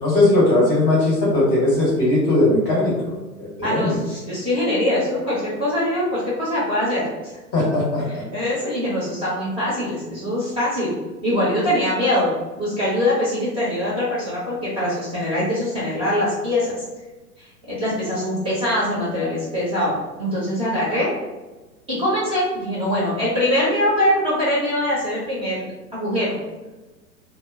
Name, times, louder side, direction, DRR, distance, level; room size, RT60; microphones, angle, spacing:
voice 1, 0.0-3.0 3.4-4.0 7.5-8.2, left 2 dB, 20° left, -5 dB, 0.8 m, -18 dB
voice 2, 3.6-7.1 8.1-10.9 11.2-12.3 12.6-16.8 17.4-21.1 21.9-26.4, left 1 dB, 10° right, -9 dB, 0.7 m, -23 dB
2.0 x 2.0 x 3.6 m, 1.2 s
figure-of-eight pair, 105°, 49 cm